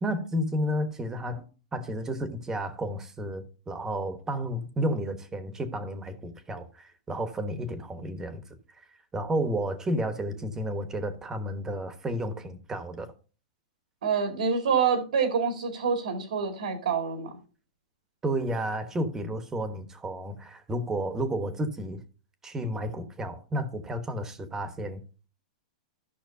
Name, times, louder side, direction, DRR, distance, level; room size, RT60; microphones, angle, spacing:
voice 1, 0.0-8.4 9.1-13.1 18.2-22.0 22.4-25.0, equal, 10° right, 1.2 m, -32 dB
voice 2, 14.0-17.3, right 6 dB, 85° right, 2.2 m, -26 dB
14.0 x 5.9 x 2.7 m
hypercardioid pair, 150°, 4 cm